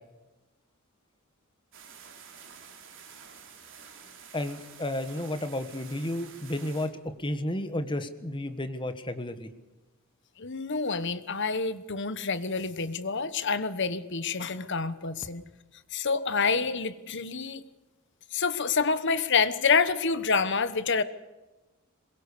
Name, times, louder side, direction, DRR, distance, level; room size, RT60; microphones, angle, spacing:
sound 1, 1.7-6.9, right 6 dB, 60° right, 3.8 m, -49 dB
voice 1, 4.3-6.9 7.2-9.5, left 1 dB, 20° left, 9 dB, 1.5 m, -32 dB
voice 2, 10.4-15.4 15.9-17.6 18.3-21.0, left 5 dB, 55° left, 13 dB, 1.2 m, -27 dB
22.0 x 22.0 x 6.8 m, 1.1 s
head